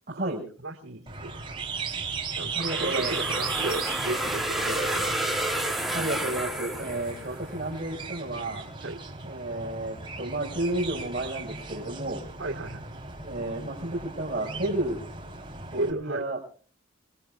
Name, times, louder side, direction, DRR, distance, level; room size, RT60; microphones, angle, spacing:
voice 1, 0.1-0.4 2.5-3.1 5.9-8.6 9.2-12.2 13.2-15.0 15.7-16.4, right 1 dB, 40° right, -4 dB, 4.7 m, -31 dB
voice 2, 0.6-1.4 2.4-5.3 8.8-9.0 12.4-13.0 15.7-16.2, right 2 dB, 80° right, -2 dB, 2.7 m, -34 dB
sound 1, 1.1-15.9, right 4 dB, 25° right, 3.4 m, -37 dB
sound 2, 2.6-7.5, right 1 dB, ahead, 1.8 m, -30 dB
28.5 x 21.5 x 2.3 m, 0.41 s
head